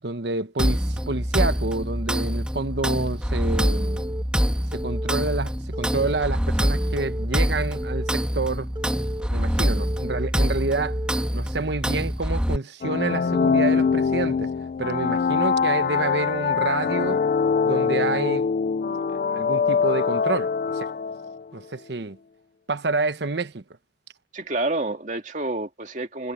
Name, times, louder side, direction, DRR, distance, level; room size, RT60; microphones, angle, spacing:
voice 1, 0.0-4.0 4.7-8.7 9.3-11.0 11.3-14.5 14.8-17.2 17.6-18.5 19.1-20.9 21.5-22.2 22.7-23.6, right 3 dB, 75° right, 1.1 m, -28 dB
sound 1, 0.6-12.6, equal, 5° right, 1.4 m, -25 dB
Telephone, 3.7-4.2 4.7-5.2 5.7-6.2 6.7-7.3 7.7-8.3 8.8-9.3 9.8-10.3 10.8-11.3, right 1 dB, 25° right, 1.5 m, -35 dB
sound 2, 12.8-21.4, left 5 dB, 50° left, 0.3 m, -23 dB
voice 2, 24.3-26.3, right 2 dB, 45° right, 2.2 m, -28 dB
head